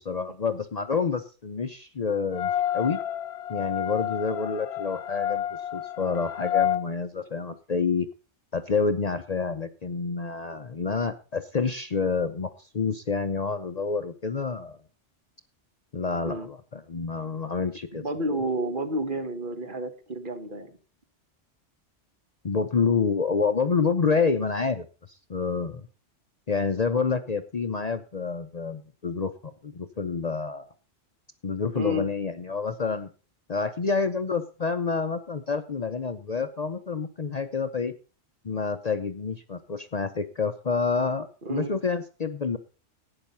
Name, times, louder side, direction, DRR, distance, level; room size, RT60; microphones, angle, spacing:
voice 1, 0.0-3.0 3.5-5.4 5.7-8.1 8.5-14.8 15.9-18.0 22.4-24.9 25.3-25.8 26.5-30.7 31.4-33.1 33.5-37.9 38.4-42.6, left 5 dB, 40° left, 9 dB, 0.7 m, -28 dB
sound 1, 2.3-6.8, left 11 dB, 65° left, 1.0 m, -29 dB
voice 2, 17.9-20.8 31.7-32.1 41.4-41.8, right 1 dB, 45° right, 8 dB, 1.4 m, -30 dB
11.5 x 8.9 x 5.4 m, 0.36 s
omnidirectional pair, 1.2 m